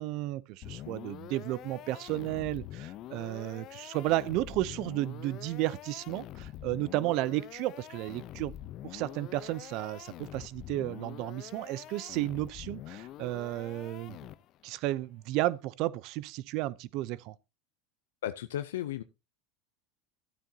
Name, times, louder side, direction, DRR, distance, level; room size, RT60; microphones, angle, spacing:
voice 1, 0.0-8.5 8.8-14.2 14.6-17.3, right 16 dB, 60° right, 0.6 m, -33 dB
sound 1, 0.6-14.7, left 13 dB, 50° left, 0.7 m, -45 dB
voice 2, 18.2-19.0, left 12 dB, 85° left, 0.6 m, -34 dB
13.5 x 8.9 x 2.8 m
supercardioid pair, 105°, 0 cm